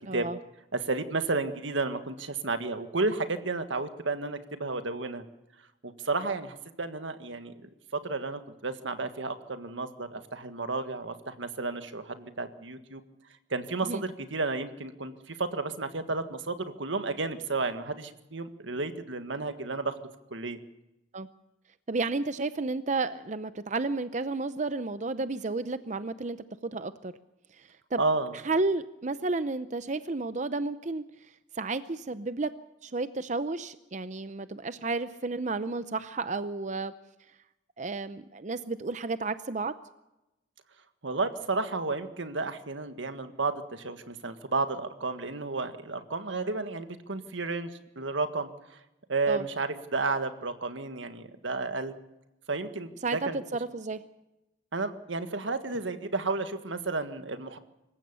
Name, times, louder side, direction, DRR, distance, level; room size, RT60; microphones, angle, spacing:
voice 1, 0.1-0.4 13.8-14.0 21.1-21.3 21.9-26.4 26.6-27.1 27.9-28.0 28.4-31.0 31.6-32.5 32.8-36.9 37.8-39.8 49.3-49.4 53.0-54.0, right 3 dB, 40° right, 13 dB, 0.6 m, -32 dB
voice 2, 0.7-5.2 5.8-7.5 7.9-13.0 13.5-20.0 20.3-20.6 28.0-28.3 41.0-48.8 49.1-51.9 52.5-53.4 54.7-57.6, right 3 dB, 85° right, 9 dB, 1.7 m, -32 dB
26.0 x 15.0 x 6.9 m, 0.95 s
head